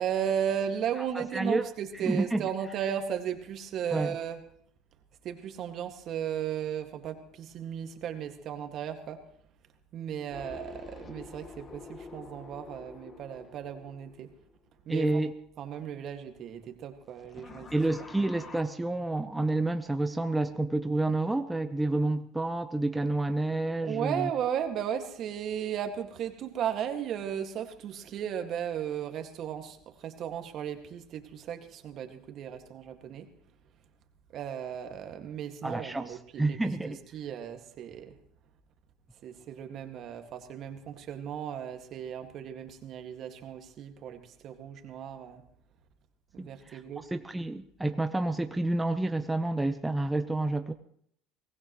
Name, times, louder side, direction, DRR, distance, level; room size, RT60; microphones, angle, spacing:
voice 1, 0.0-4.5 5.2-9.2 9.9-14.4 14.9-15.2 15.6-17.9 18.3-18.5 23.8-33.3 34.3-38.2 39.2-45.4 46.3-47.1, right 9 dB, 55° right, 6 dB, 2.0 m, -35 dB
voice 2, 1.2-1.6 2.0-2.4 3.9-4.1 14.9-15.3 17.7-24.3 35.6-37.0 46.4-46.8 47.1-50.7, right 2 dB, 10° right, 8 dB, 0.9 m, -29 dB
sound 1, 10.3-14.9 17.1-18.6, left 4 dB, 35° left, 2.2 m, -47 dB
23.5 x 18.5 x 3.2 m, 0.67 s
hypercardioid pair, 80°, 0 cm